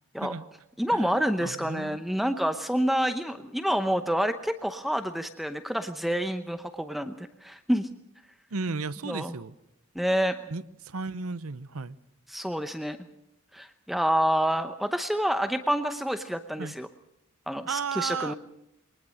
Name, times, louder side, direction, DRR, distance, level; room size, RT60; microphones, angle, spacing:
voice 1, 0.8-7.9 9.0-9.3 9.9-10.4 12.3-13.0 13.5-16.9 17.5-18.3, equal, ahead, 9 dB, 0.8 m, -28 dB
voice 2, 1.4-2.0 8.5-9.6 10.5-12.0 16.6-16.7 17.7-18.3, right 4 dB, 90° right, 16 dB, 0.8 m, -34 dB
23.0 x 19.5 x 6.4 m, 0.82 s
head